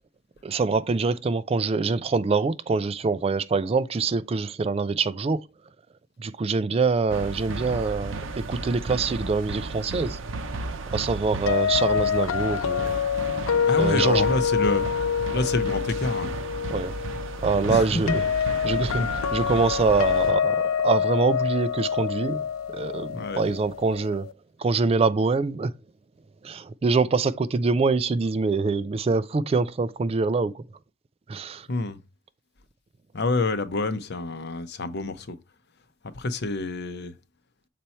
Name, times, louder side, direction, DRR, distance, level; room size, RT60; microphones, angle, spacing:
voice 1, 0.4-5.5 6.2-10.2 10.9-13.0 13.8-14.2 16.7-16.9 17.4-18.2 18.6-19.0 19.3-22.4 22.7-24.3 24.6-25.7 26.4-30.6 31.3-31.7, right 4 dB, 30° right, 0.3 m, -25 dB
sound 1, 7.1-20.3, right 2 dB, 70° right, 0.7 m, -34 dB
sound 2, 11.5-24.3, left 7 dB, 85° left, 0.4 m, -26 dB
voice 2, 13.6-14.8 15.3-16.4 17.7-18.2 19.0-19.1 23.1-23.5 31.7-32.0 33.1-35.4 36.1-37.1, left 2 dB, 55° left, 0.8 m, -27 dB
6.8 x 4.2 x 4.3 m
head